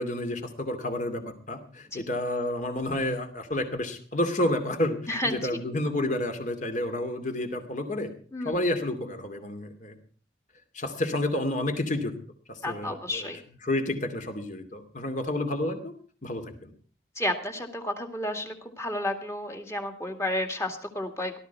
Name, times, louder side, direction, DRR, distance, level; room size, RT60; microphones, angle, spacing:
voice 1, 0.0-5.0 5.2-8.1 8.4-10.0 10.7-12.2 12.5-13.3 13.6-16.7, left 1 dB, 40° left, 7 dB, 2.4 m, -30 dB
voice 2, 5.1-5.4 8.3-8.6 12.6-13.4 17.2-21.4, left 1 dB, 15° left, 4 dB, 2.1 m, -31 dB
18.0 x 13.0 x 4.6 m, 0.43 s
head